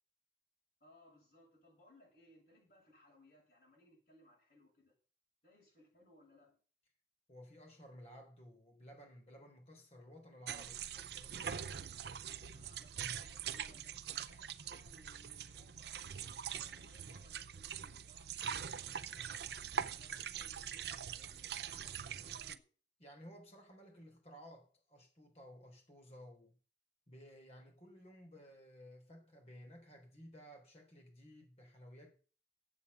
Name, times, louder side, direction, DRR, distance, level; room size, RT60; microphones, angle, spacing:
voice 1, 0.8-5.0 5.4-6.6 12.5-19.4 19.9-22.7, left 1 dB, 55° left, 7.7 m, -65 dB
voice 2, 7.3-11.5 23.0-26.6 27.1-32.1, equal, 35° left, 3.7 m, -56 dB
sound 1, 10.5-22.6, right 8 dB, 60° right, 0.6 m, -43 dB
8.4 x 8.1 x 8.2 m
head